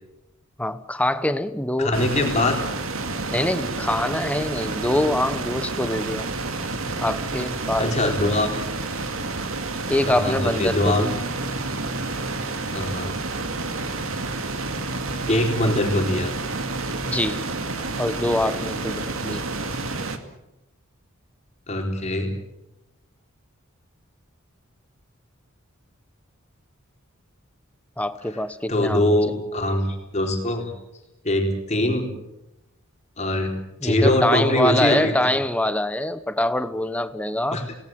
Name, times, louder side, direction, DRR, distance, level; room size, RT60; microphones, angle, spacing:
voice 1, 0.6-2.0 3.3-6.3 7.0-8.3 9.9-11.2 17.1-17.5 17.9-19.4 28.0-29.1 33.8-37.7, left 1 dB, 5° left, 12 dB, 1.0 m, -24 dB
voice 2, 1.8-2.6 7.8-8.5 10.1-11.2 12.7-13.1 15.3-16.3 21.7-22.3 28.7-30.7 31.2-32.1 33.2-33.5 33.8-35.3 37.5-37.7, left 1 dB, 35° left, 2 dB, 4.0 m, -22 dB
sound 1, 1.9-20.2, right 3 dB, 75° right, 2.3 m, -29 dB
28.5 x 18.5 x 7.8 m, 0.92 s
head